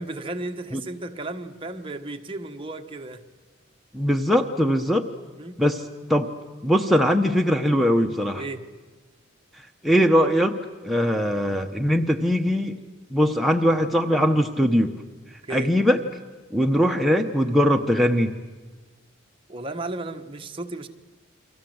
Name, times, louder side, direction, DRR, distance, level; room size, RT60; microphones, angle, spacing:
voice 1, 0.0-3.3 5.4-5.6 8.3-8.7 15.4-15.7 19.5-20.9, right 2 dB, 25° right, 5 dB, 1.3 m, -34 dB
voice 2, 3.9-5.0 5.6-5.8 6.1-6.3 6.6-8.4 9.8-10.6 10.8-12.7 13.1-14.9 15.5-16.0 16.5-18.3, equal, ahead, 6 dB, 0.9 m, -21 dB
29.5 x 24.5 x 7.9 m, 1.4 s
head